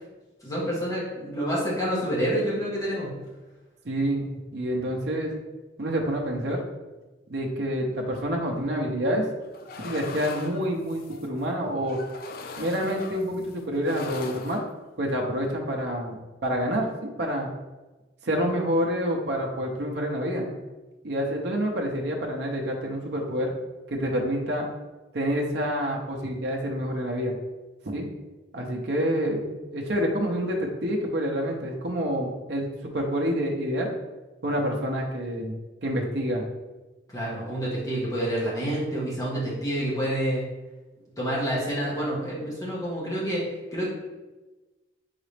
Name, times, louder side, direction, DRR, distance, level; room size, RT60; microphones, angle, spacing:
voice 1, 0.4-3.1 37.1-40.4 41.2-43.4 43.7-43.9, equal, 20° left, -7 dB, 1.2 m, -28 dB
voice 2, 3.8-5.3 5.8-6.6 7.3-9.3 9.8-12.0 12.6-14.6 15.0-17.5 18.2-20.5 21.0-23.5 23.9-24.7 25.1-27.4 27.8-28.1 28.5-32.7 32.9-33.9 34.4-35.5 35.8-36.4, equal, 60° right, 0 dB, 0.6 m, -27 dB
sound 1, 9.4-11.3 11.8-13.5 13.8-14.8, left 4 dB, 50° left, 0.4 m, -40 dB
4.0 x 3.8 x 3.3 m, 1.2 s
head